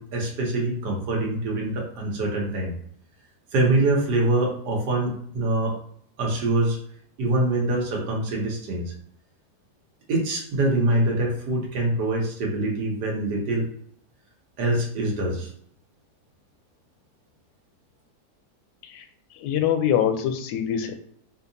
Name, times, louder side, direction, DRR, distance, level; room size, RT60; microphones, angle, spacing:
voice 1, 0.0-2.7 3.5-5.8 6.2-6.8 7.2-8.9 10.1-13.7 14.6-15.5, right 2 dB, 75° right, -1 dB, 1.5 m, -24 dB
voice 2, 19.3-20.9, left 9 dB, 85° left, 7 dB, 1.2 m, -24 dB
4.4 x 2.8 x 2.7 m, 0.64 s
omnidirectional pair, 1.8 m